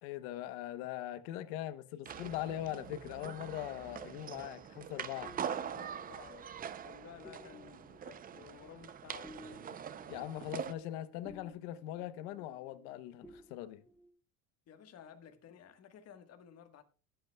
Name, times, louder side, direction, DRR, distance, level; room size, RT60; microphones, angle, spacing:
voice 1, 0.0-5.4 10.1-13.8, left 13 dB, 85° left, 0.9 m, -41 dB
sound 1, 2.1-10.7, right 8 dB, 25° right, 0.5 m, -44 dB
sound 2, 3.2-13.0 13.2-14.1, left 1 dB, 5° left, 1.1 m, -58 dB
voice 2, 5.5-9.8 14.7-16.8, left 8 dB, 40° left, 1.3 m, -55 dB
20.0 x 8.0 x 2.2 m
cardioid pair, 140°, 39 cm